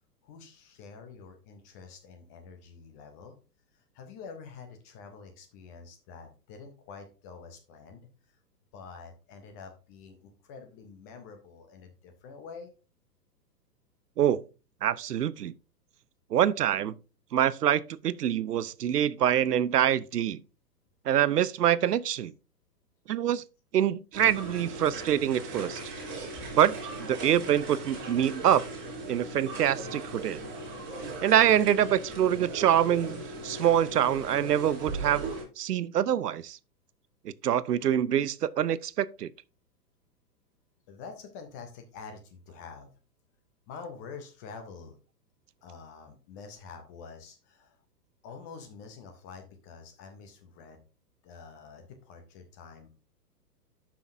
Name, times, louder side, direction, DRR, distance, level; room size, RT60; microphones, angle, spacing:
voice 1, 0.2-3.3 3.7-8.4 8.7-12.7 40.9-42.9 43.7-45.0 45.6-47.8 48.2-50.8 51.2-52.9, left 5 dB, 15° left, 0.4 m, -47 dB
voice 2, 14.8-15.5 16.3-17.0 17.3-20.4 21.1-22.3 23.1-23.4 23.7-25.8 26.5-28.6 29.1-30.4 31.2-35.3 35.6-36.6 37.2-39.3, right 10 dB, 75° right, 0.7 m, -25 dB
sound 1, 24.1-35.4, right 2 dB, 25° right, 2.9 m, -38 dB
11.5 x 5.9 x 2.6 m
figure-of-eight pair, 115°, 48 cm